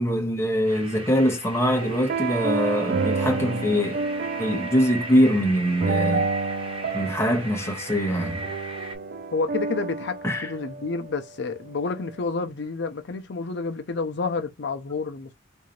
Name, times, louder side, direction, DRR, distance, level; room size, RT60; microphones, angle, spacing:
voice 1, 0.0-4.0 4.4-6.2 6.9-8.5 10.2-10.5, equal, 15° left, 0.9 m, -23 dB
sound 1, 0.7-9.0, right 2 dB, 30° right, 1.0 m, -38 dB
sound 2, 1.7-11.2, right 3 dB, 50° right, 0.4 m, -29 dB
voice 2, 9.3-15.3, left 4 dB, 60° left, 0.6 m, -29 dB
3.7 x 2.6 x 3.1 m
head